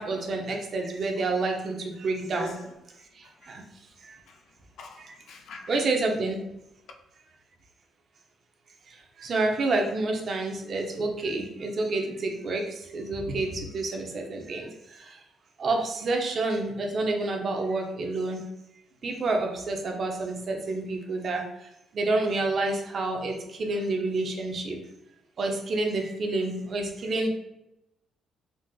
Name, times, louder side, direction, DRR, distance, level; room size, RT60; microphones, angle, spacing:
voice 1, 0.0-2.5 3.5-3.6 4.0-4.2 5.0-5.1 5.7-6.4 9.2-15.2 15.6-18.5 19.0-21.4 21.9-24.8 25.4-27.3, right 2 dB, 50° right, 0.6 m, -29 dB
voice 2, 2.3-2.7 3.4-3.5 4.3-4.4 4.8-5.8, left 3 dB, 75° left, 0.4 m, -42 dB
3.8 x 2.4 x 2.3 m
cardioid pair, 90°, 0 cm